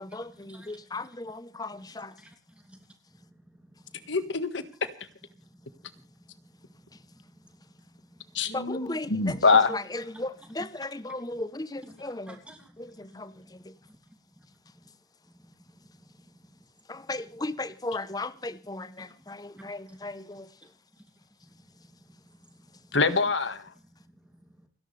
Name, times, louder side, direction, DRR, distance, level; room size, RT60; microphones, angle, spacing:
voice 1, 0.0-2.2 6.9-7.0 8.5-12.4 12.8-13.8 16.9-20.7, left 2 dB, 20° left, 0.9 m, -37 dB
voice 2, 3.1-4.0 5.3-8.4 12.3-12.9 13.8-13.9 14.4-14.5 14.7-14.9 15.3-16.6 19.2-20.0 21.4-23.0 24.0-24.7, right 1 dB, 5° right, 2.8 m, -56 dB
voice 3, 4.1-4.9 8.3-9.7 22.9-23.7, left 4 dB, 80° left, 1.7 m, -24 dB
29.5 x 11.0 x 3.4 m
head